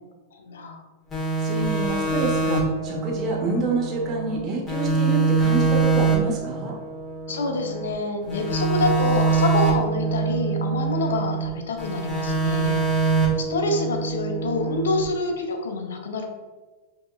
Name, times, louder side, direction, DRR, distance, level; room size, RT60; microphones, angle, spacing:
voice 1, 0.3-0.8 7.3-16.3, left 3 dB, 80° left, 4 dB, 0.6 m, -27 dB
sound 1, 1.1-4.4 4.7-7.9 8.3-11.5 11.8-15.0, right 4 dB, 20° left, 1.4 m, -24 dB
voice 2, 1.4-6.7, right 2 dB, 35° right, -2 dB, 1.0 m, -27 dB
5.2 x 2.8 x 2.3 m, 1.3 s
hypercardioid pair, 110°, 0 cm